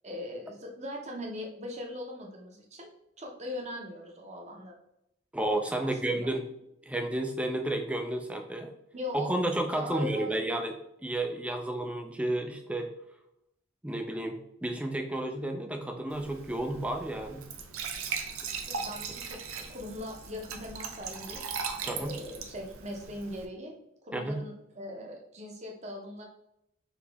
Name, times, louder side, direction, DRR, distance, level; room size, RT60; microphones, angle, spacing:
voice 1, 0.0-2.9 3.2-4.7 5.8-6.3 8.9-9.3 9.7-10.4 18.6-21.4 21.8-23.7 24.0-26.3, left 1 dB, 30° right, 1 dB, 0.8 m, -40 dB
voice 2, 5.3-6.4 6.9-8.7 9.1-10.7 11.0-12.9 13.8-17.4 21.9-22.1 24.1-24.4, right 1 dB, 5° right, 4 dB, 0.4 m, -31 dB
Glass / Trickle dribble / Fill (with liquid), 16.1-23.5, right 5 dB, 85° right, 0.6 m, -39 dB
3.9 x 2.9 x 3.4 m, 0.80 s
head